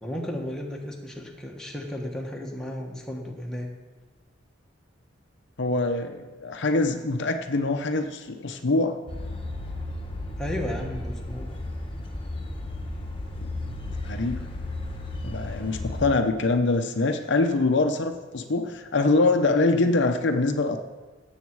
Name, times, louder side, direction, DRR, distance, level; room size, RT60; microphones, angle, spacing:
voice 1, 0.0-3.7 10.4-11.5, equal, 5° left, -1 dB, 1.5 m, -34 dB
voice 2, 5.6-9.0 13.4-13.8 14.0-14.5 15.2-20.8, left 3 dB, 60° left, 6 dB, 0.7 m, -24 dB
sound 1, 9.1-16.1, left 2 dB, 25° left, 1.4 m, -34 dB
16.5 x 7.3 x 4.7 m, 1.3 s
head